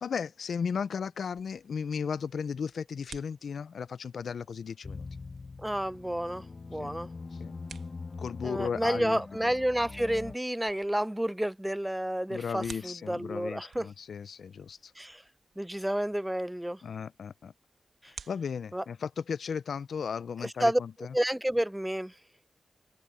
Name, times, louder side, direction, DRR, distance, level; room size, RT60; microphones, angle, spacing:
voice 1, 0.0-5.1 6.8-6.9 7.4-7.5 8.2-9.2 12.3-14.9 16.8-17.5 18.0-21.1, left 6 dB, 80° left, 0.5 m, -35 dB
sound 1, 1.3-19.1, right 6 dB, 85° right, 1.2 m, -56 dB
sound 2, 4.8-10.3, left 4 dB, 45° left, 1.3 m, -43 dB
voice 2, 5.6-6.4 6.7-7.1 8.4-13.9 15.0-15.2 15.6-16.8 18.0-18.1 18.7-18.8 20.4-20.8 21.1-22.1, right 1 dB, 10° right, 0.6 m, -30 dB
cardioid pair, 60°, 0 cm